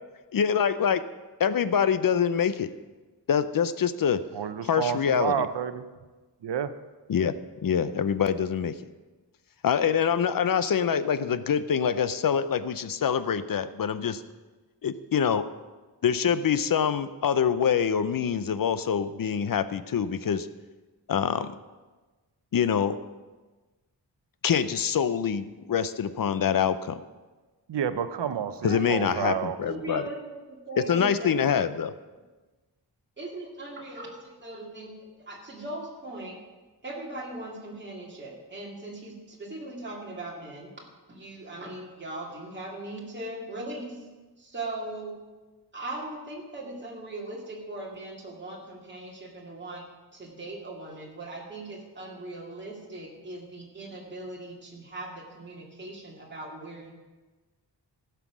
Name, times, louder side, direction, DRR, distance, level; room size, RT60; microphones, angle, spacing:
voice 1, 0.3-1.0 1.4-2.7 3.3-4.2 4.6-5.5 7.1-7.3 7.6-8.7 9.6-14.2 14.8-15.4 16.0-20.5 21.1-21.5 22.5-23.0 24.4-27.0 28.6-30.0 30.9-31.9, left 7 dB, 55° left, 13 dB, 0.6 m, -25 dB
voice 2, 4.3-5.9 6.4-6.7 27.7-29.6, right 8 dB, 75° right, 12 dB, 0.7 m, -29 dB
voice 3, 28.6-31.3 33.2-36.3 36.8-40.7 41.1-44.0 44.4-45.1 45.7-49.8 50.1-56.9, right 2 dB, 25° right, -3 dB, 2.4 m, -39 dB
15.5 x 5.7 x 6.1 m, 1.2 s
wide cardioid pair, 140°, 42 cm